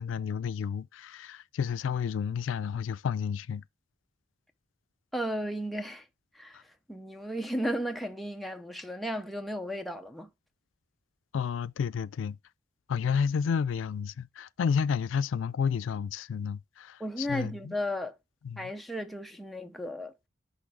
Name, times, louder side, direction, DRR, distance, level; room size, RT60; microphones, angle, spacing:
voice 1, 0.0-3.6 11.3-12.4 12.9-17.7 18.4-18.7, left 6 dB, 85° left, 0.3 m, -31 dB
voice 2, 5.1-6.1 6.3-6.6 6.9-10.3 17.0-18.2 18.6-20.1, equal, ahead, 0.5 m, -34 dB
6.2 x 5.4 x 3.5 m
head